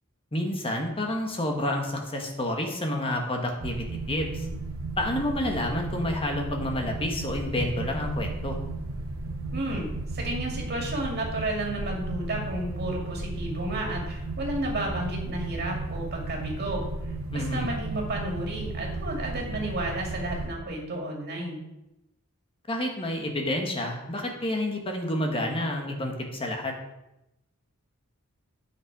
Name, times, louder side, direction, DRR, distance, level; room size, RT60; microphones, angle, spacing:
voice 1, 0.3-4.4 5.0-8.6 17.3-17.7 22.7-26.7, left 1 dB, 25° left, 2 dB, 1.4 m, -29 dB
sound 1, 3.6-20.5, right 2 dB, 75° right, 1.2 m, -34 dB
voice 2, 9.5-16.8 17.3-21.6, right 1 dB, 50° right, -1 dB, 2.4 m, -32 dB
8.9 x 6.3 x 4.7 m, 0.90 s
head